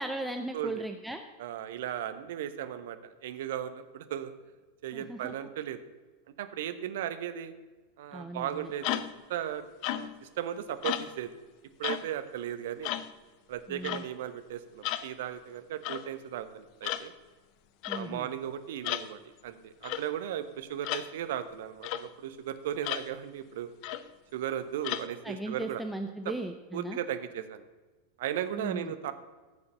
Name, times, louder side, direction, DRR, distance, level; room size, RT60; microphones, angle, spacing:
voice 1, 0.0-1.2 4.9-5.3 8.1-8.7 13.7-14.0 17.9-18.3 25.2-27.0 28.5-28.9, right 1 dB, ahead, 5 dB, 0.7 m, -37 dB
voice 2, 1.4-4.3 4.8-5.8 6.4-7.5 8.0-11.3 11.8-12.9 13.5-17.1 17.9-23.7 24.3-25.8 26.2-26.3 26.7-27.6 28.2-29.1, right 10 dB, 55° right, 11 dB, 0.9 m, -36 dB
sound 1, 8.8-9.2 9.8-10.2 10.8-11.2 11.8-12.1 12.8-13.1 13.8-14.1 14.8-15.1 15.8-16.1 16.8-17.1 17.8-18.1 18.8-19.1 19.8-20.1 20.8-21.1 21.8-22.0 22.8-23.1 23.8-24.1 24.8-25.1, left 13 dB, 45° left, 0.6 m, -34 dB
14.5 x 7.0 x 6.6 m, 1.3 s
figure-of-eight pair, 90°, 0 cm